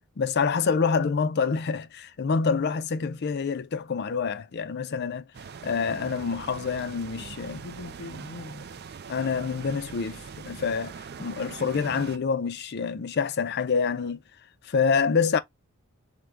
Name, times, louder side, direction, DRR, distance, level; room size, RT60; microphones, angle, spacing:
voice 1, 0.2-5.2 5.6-7.6 9.1-10.9 11.2-14.2 14.6-15.4, left 5 dB, 50° left, 0.4 m, -27 dB
sound 1, 5.3-12.2, right 6 dB, 45° right, 0.4 m, -42 dB
voice 2, 7.5-8.8, left 3 dB, 85° left, 0.7 m, -42 dB
3.7 x 2.2 x 4.4 m
head